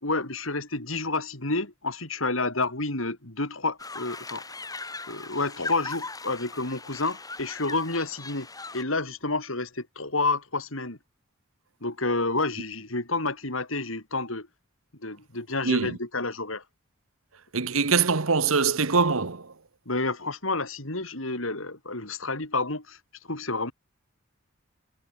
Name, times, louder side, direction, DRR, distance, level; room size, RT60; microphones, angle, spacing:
voice 1, 0.0-4.4 5.1-8.5 8.7-11.0 11.8-14.5 15.0-16.6 19.9-23.0 23.3-23.7, left 3 dB, 75° left, 5.6 m, -29 dB
sound 1, 3.8-8.8, left 3 dB, 20° left, 5.5 m, -39 dB
voice 2, 15.6-16.0 17.5-19.5, right 4 dB, 80° right, 1.4 m, -23 dB
head